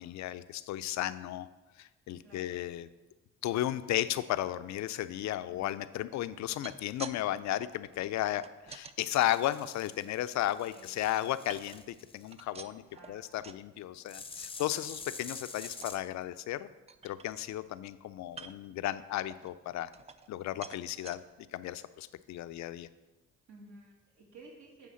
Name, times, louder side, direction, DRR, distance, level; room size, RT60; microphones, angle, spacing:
voice 1, 0.0-1.5 1.8-2.9 3.4-12.8 13.1-16.7 17.0-19.9 20.3-21.2 21.5-22.9, left 13 dB, 65° left, 13 dB, 0.5 m, -34 dB
voice 2, 2.2-2.5 5.4-5.7 10.6-10.9 12.5-12.6 12.9-13.5 23.5-24.9, right 2 dB, 65° right, -4 dB, 2.2 m, -54 dB
sound 1, 6.3-7.2 7.5-9.0 9.5-10.5 10.9-12.0 12.3-13.7 14.0-14.3 14.6-14.7 15.1-15.3 15.6-16.0 16.5-16.6 16.9-17.7 18.3-18.8 19.3-20.4 20.6-21.2 21.8-21.9 22.2-22.3, right 5 dB, 20° right, 0.4 m, -50 dB
sound 2, 9.1-12.3 14.1-16.0, left 4 dB, 20° left, 0.6 m, -47 dB
9.5 x 3.5 x 6.3 m, 1.1 s
cardioid pair, 90°, 30 cm